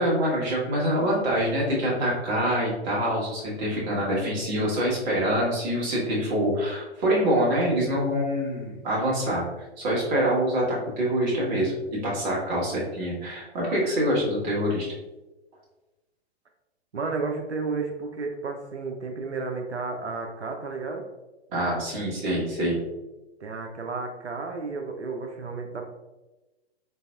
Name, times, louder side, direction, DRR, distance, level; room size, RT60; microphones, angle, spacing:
voice 1, 0.0-11.7 12.0-14.9 21.5-22.8, equal, 25° right, -4 dB, 1.3 m, -25 dB
voice 2, 16.9-21.0 23.4-25.9, right 4 dB, 85° right, 2 dB, 0.6 m, -32 dB
4.0 x 3.9 x 2.3 m, 1.1 s
figure-of-eight pair, 110°, 33 cm